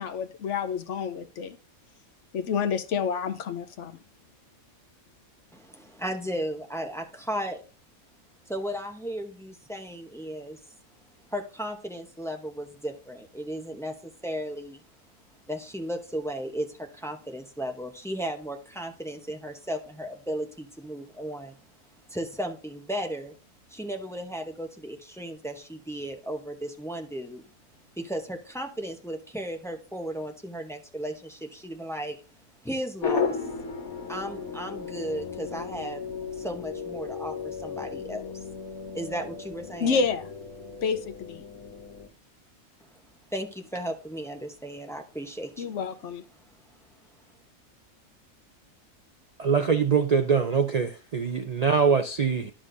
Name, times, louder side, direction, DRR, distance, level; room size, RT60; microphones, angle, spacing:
voice 1, 0.0-1.6 2.3-4.0 39.8-40.3 40.8-41.4 45.6-46.2, left 6 dB, 65° left, 1.0 m, -29 dB
voice 2, 5.5-7.6 8.5-14.8 15.5-23.4 23.7-27.5 28.0-33.5 34.1-36.0 36.3-38.4 38.9-40.0 43.3-45.8 46.3-47.3, equal, 5° left, 0.6 m, -35 dB
sound 1, 33.0-42.1, left 5 dB, 85° left, 1.6 m, -35 dB
voice 3, 49.4-52.5, right 6 dB, 90° right, 0.3 m, -23 dB
11.0 x 6.3 x 2.6 m
omnidirectional pair, 1.4 m